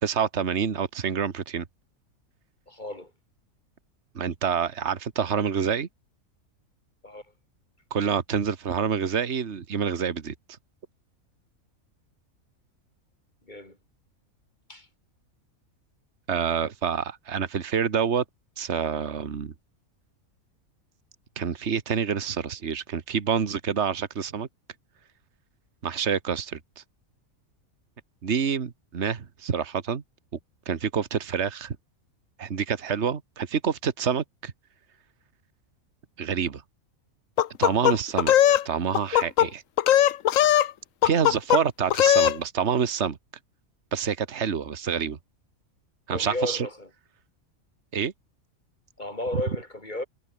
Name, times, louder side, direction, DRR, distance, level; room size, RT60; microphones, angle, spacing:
voice 1, 0.0-1.7 4.1-5.9 7.9-10.3 16.3-18.2 18.6-19.5 21.4-24.5 25.8-26.8 28.2-30.0 30.7-31.8 32.4-34.5 36.2-36.6 37.6-39.6 41.0-43.2 43.9-45.2 46.1-46.7 47.9-48.1, right 7 dB, 55° right, 1.7 m, -27 dB
voice 2, 2.7-3.1 7.0-7.2 13.5-13.8 14.7-14.9 46.1-46.9 49.0-50.1, left 1 dB, 30° left, 5.1 m, -33 dB
sound 1, 37.4-38.6 38.9-39.5 39.8-40.7 41.0-41.6 41.9-42.4, left 11 dB, 70° left, 1.1 m, -19 dB
omnidirectional pair, 1.5 m